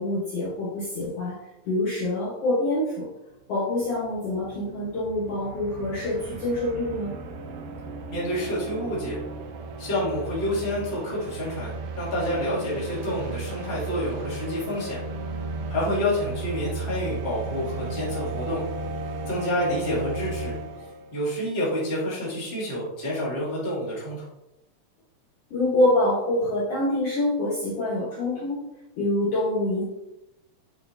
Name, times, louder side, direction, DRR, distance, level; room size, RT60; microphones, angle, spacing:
voice 1, 0.0-1.4 1.7-3.1 3.5-7.1 25.5-28.6 29.0-29.8, left 1 dB, 60° left, -7 dB, 1.9 m, -25 dB
sound 1, 3.4-3.5 3.7-21.2, right 3 dB, 90° right, 2.3 m, -35 dB
voice 2, 8.1-9.2 9.8-15.0 15.7-18.6 19.3-20.5 21.1-24.2, left 1 dB, 25° left, -6 dB, 1.9 m, -28 dB
8.6 x 4.4 x 2.6 m, 0.92 s
omnidirectional pair, 3.6 m